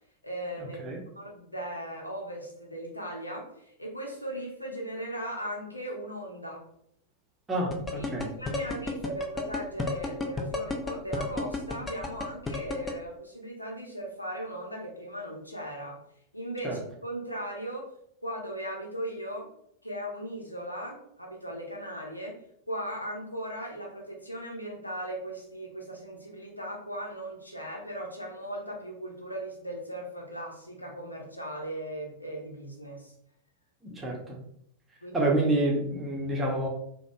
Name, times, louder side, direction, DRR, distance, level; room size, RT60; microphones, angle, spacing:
voice 1, 0.2-6.6 7.9-16.0 16.3-17.8 18.2-19.5 19.8-22.3 22.7-33.1 35.0-35.2, right 1 dB, 85° left, 0 dB, 0.8 m, -38 dB
voice 2, 7.5-8.3 16.6-16.8 33.8-34.4 35.1-36.7, right 2 dB, 15° right, -2 dB, 0.9 m, -28 dB
sound 1, 7.7-12.9, left 3 dB, 15° left, 0.5 m, -31 dB
4.9 x 2.3 x 2.3 m, 0.71 s
figure-of-eight pair, 90°, 0 cm